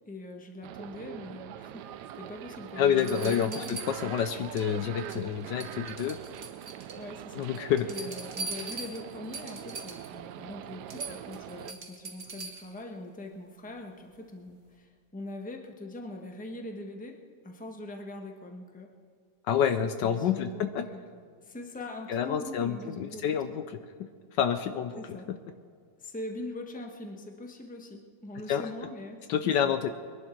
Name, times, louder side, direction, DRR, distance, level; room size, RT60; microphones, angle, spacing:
voice 1, 0.1-3.7 6.9-7.4 7.9-17.2 17.4-18.9 20.0-20.5 20.9-21.0 21.4-23.6 25.0-25.3 26.0-29.7, left 2 dB, 5° left, 3 dB, 1.0 m, -42 dB
sound 1, 0.6-11.7, right 11 dB, 70° right, 1.0 m, -43 dB
sound 2, 2.3-2.4 3.0-4.7 5.0-5.3 5.6-7.0 7.4-10.1 10.5-10.6 10.9-12.8 14.5-14.6, right 3 dB, 40° right, 1.6 m, -41 dB
voice 2, 2.8-6.2 7.3-7.9 19.5-20.8 22.1-23.8 24.3-25.2 28.5-28.6 29.3-29.9, left 8 dB, 70° left, 9 dB, 1.2 m, -28 dB
22.5 x 11.0 x 4.5 m, 2.2 s
omnidirectional pair, 2.1 m